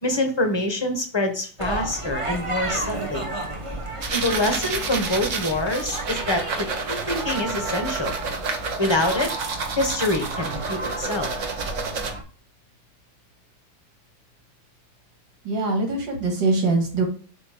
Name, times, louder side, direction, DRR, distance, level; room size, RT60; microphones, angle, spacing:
voice 1, 0.0-3.3 4.1-8.1 8.8-9.3 9.8-11.3, left 1 dB, 25° left, 5 dB, 0.6 m, -25 dB
sound 1, 1.6-12.2, right 2 dB, 25° right, 0.8 m, -33 dB
sound 2, 4.0-12.1, right 4 dB, 50° right, 1.0 m, -30 dB
voice 2, 15.4-17.1, right 3 dB, 75° right, 2 dB, 2.4 m, -23 dB
7.7 x 3.2 x 4.9 m, 0.40 s
omnidirectional pair, 2.1 m